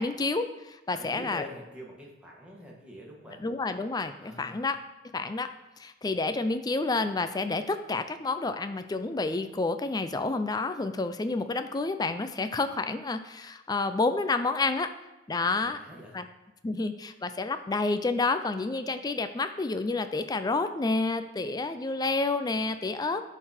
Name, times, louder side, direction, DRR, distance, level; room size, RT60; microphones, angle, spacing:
voice 1, 0.0-1.4 3.4-4.8 5.1-5.5 5.8-14.9 15.3-15.8 16.1-16.3 16.6-23.2, left 3 dB, 20° left, 9 dB, 0.4 m, -29 dB
voice 2, 0.9-3.4 4.2-4.6 15.4-16.2, left 1 dB, 5° right, -3 dB, 1.6 m, -45 dB
11.0 x 3.9 x 4.3 m, 1.0 s
head